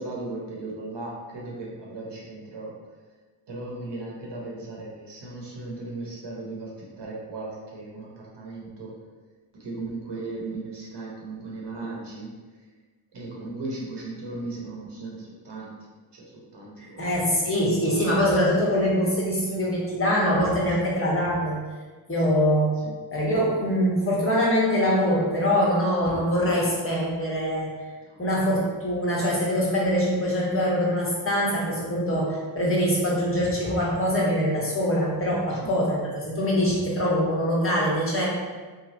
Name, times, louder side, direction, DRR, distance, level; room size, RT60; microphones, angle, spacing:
voice 1, 0.0-2.8 3.5-8.9 9.5-12.3 13.1-15.7 16.1-17.1 22.3-22.4 22.8-22.9 28.0-28.3 35.5-35.7, right 2 dB, 55° right, -4 dB, 1.2 m, -37 dB
voice 2, 16.8-21.7 22.1-22.8 23.1-27.9 28.2-38.3, equal, 25° left, -5 dB, 1.4 m, -23 dB
3.1 x 2.3 x 3.9 m, 1.4 s
supercardioid pair, 55°, 50 cm